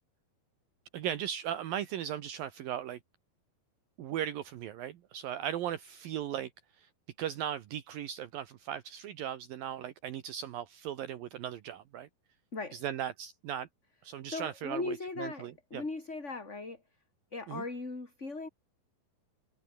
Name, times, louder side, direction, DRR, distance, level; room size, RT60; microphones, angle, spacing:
voice 1, 0.9-3.0 4.0-6.5 6.8-6.9 7.2-12.1 12.7-13.7 14.0-15.8 17.5-17.6, right 10 dB, 70° right, 3.0 m, -37 dB
voice 2, 14.3-16.8 17.3-18.5, left 3 dB, 20° left, 3.8 m, -38 dB
omnidirectional pair, 4.4 m